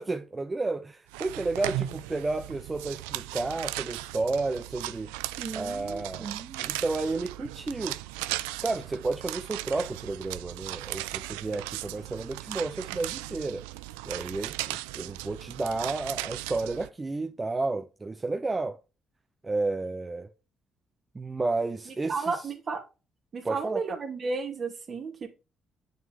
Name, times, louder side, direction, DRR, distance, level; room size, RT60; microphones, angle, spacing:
voice 1, 0.0-5.1 5.5-6.3 6.6-8.0 8.6-13.6 14.1-18.8 19.4-20.3 21.1-22.5 23.4-23.8, right 3 dB, 30° right, 0.9 m, -31 dB
sound 1, 1.1-16.9, right 17 dB, 85° right, 0.4 m, -37 dB
voice 2, 5.4-6.7 21.9-22.8 23.3-25.3, right 4 dB, 50° right, 2.5 m, -34 dB
8.8 x 6.7 x 3.1 m
hypercardioid pair, 50°, 0 cm